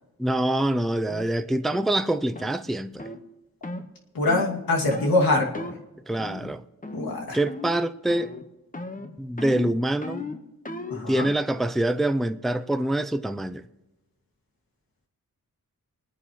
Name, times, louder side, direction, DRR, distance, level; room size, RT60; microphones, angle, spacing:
voice 1, 0.2-3.1 6.1-6.6 7.3-8.3 9.2-10.3 11.1-13.6, right 1 dB, ahead, 0.4 m, -25 dB
sound 1, 1.1-1.3 1.7-1.9 2.4-2.6 3.0-3.2 3.6-3.9 4.3-4.5 4.9-5.2 5.5-5.8 6.2-6.5 6.8-7.2 7.5-7.8 8.1-8.5 8.7-11.1, left 2 dB, 25° left, 1.2 m, -36 dB
voice 2, 4.1-5.7 6.9-7.4 10.9-11.3, left 2 dB, 80° left, 2.3 m, -24 dB
28.0 x 9.7 x 3.1 m
wide cardioid pair, 85°, 35 cm